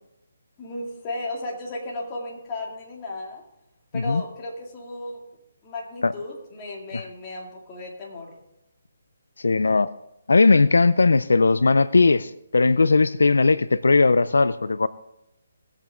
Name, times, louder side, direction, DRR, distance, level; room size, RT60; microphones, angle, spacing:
voice 1, 0.6-3.4 3.9-5.2 5.6-8.3, left 2 dB, 25° left, -2 dB, 2.5 m, -34 dB
voice 2, 9.4-9.9 10.3-14.9, left 3 dB, 90° left, 17 dB, 0.4 m, -18 dB
19.0 x 8.2 x 3.7 m, 0.86 s
hypercardioid pair, 160°, 0 cm